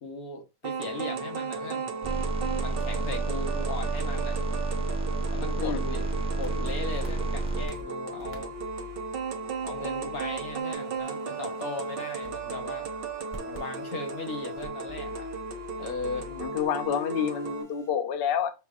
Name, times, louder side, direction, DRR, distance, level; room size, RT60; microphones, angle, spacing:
voice 1, 0.0-2.0 2.6-4.4 5.3-6.0 6.3-8.5 9.6-12.9 13.5-15.3 15.8-16.3, left 3 dB, 90° left, 1.5 m, -38 dB
sound 1, 0.6-17.6, right 4 dB, 50° right, 0.7 m, -35 dB
sound 2, 2.0-7.7, right 3 dB, 10° right, 0.3 m, -30 dB
sound 3, 5.9-17.9, left 1 dB, 10° left, 1.0 m, -48 dB
voice 2, 16.3-18.5, left 8 dB, 55° left, 0.7 m, -28 dB
5.7 x 3.0 x 2.4 m
omnidirectional pair, 1.5 m